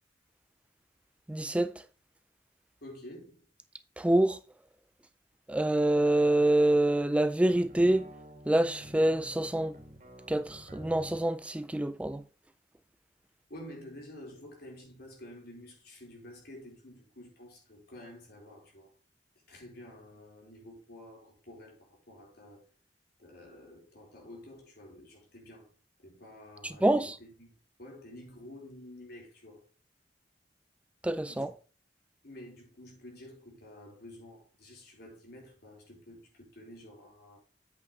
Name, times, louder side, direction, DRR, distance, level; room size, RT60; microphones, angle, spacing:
voice 1, 1.3-1.7 4.0-4.4 5.5-8.1 8.5-9.7 10.3-12.2 26.6-27.2 31.0-31.5, right 1 dB, 5° right, 0.3 m, -26 dB
voice 2, 2.8-3.4 13.5-18.9 19.5-22.6 23.2-25.7 26.0-27.5 27.8-29.7 31.3-31.5 32.2-37.4, left 1 dB, 60° left, 4.5 m, -50 dB
sound 1, 7.4-11.2, equal, 50° right, 2.6 m, -49 dB
8.5 x 8.1 x 3.2 m
head